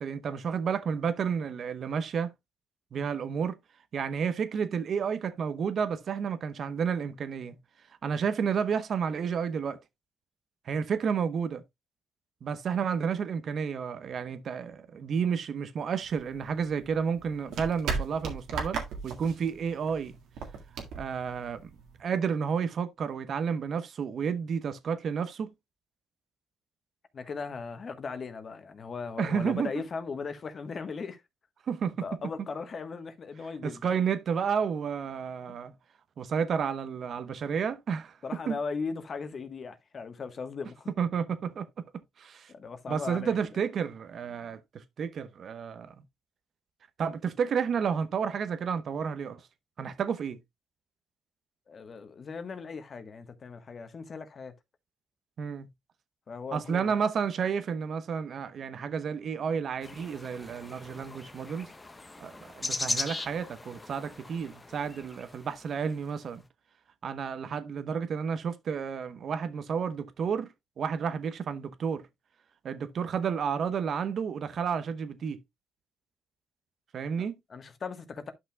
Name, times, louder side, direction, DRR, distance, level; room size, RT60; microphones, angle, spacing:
voice 1, 0.0-2.3 2.9-3.6 3.9-7.6 8.0-9.8 10.7-11.6 12.4-20.2 21.0-21.7 22.0-25.5 29.2-29.7 31.7-32.0 33.6-35.7 36.2-38.2 38.5-38.6 41.0-41.8 42.2-42.5 42.9-45.9 47.0-49.5 49.8-50.4 55.4-55.7 56.5-61.7 62.2-66.4 67.0-72.0 72.6-75.4 76.9-77.3, right 6 dB, 55° right, 0.9 m, -31 dB
sound 1, 16.0-22.0, right 5 dB, 85° right, 1.7 m, -37 dB
voice 2, 27.1-31.2 32.0-33.9 38.2-40.9 42.5-43.4 51.7-54.5 56.3-56.9 77.2-78.3, left 5 dB, 45° left, 1.2 m, -38 dB
sound 2, 59.8-66.0, left 2 dB, 20° left, 0.9 m, -38 dB
11.0 x 5.9 x 2.3 m
cardioid pair, 90°, 0 cm